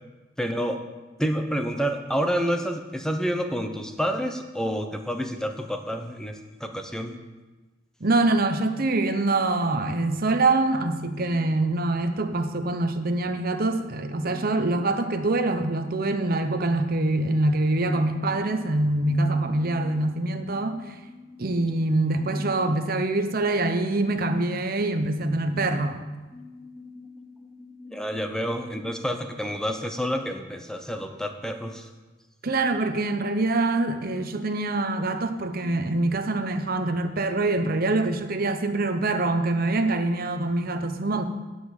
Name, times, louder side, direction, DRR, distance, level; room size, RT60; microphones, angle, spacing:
voice 1, 0.4-0.8 1.2-6.3 6.6-7.2 11.2-11.5 14.3-14.7 19.1-20.0 20.7-20.8 21.1-21.6 26.3-31.9, equal, 5° left, 5 dB, 0.8 m, -30 dB
voice 2, 8.0-20.9 21.4-26.0 32.4-41.3, right 2 dB, 50° right, 7 dB, 0.9 m, -24 dB
11.0 x 5.5 x 8.2 m, 1.2 s
head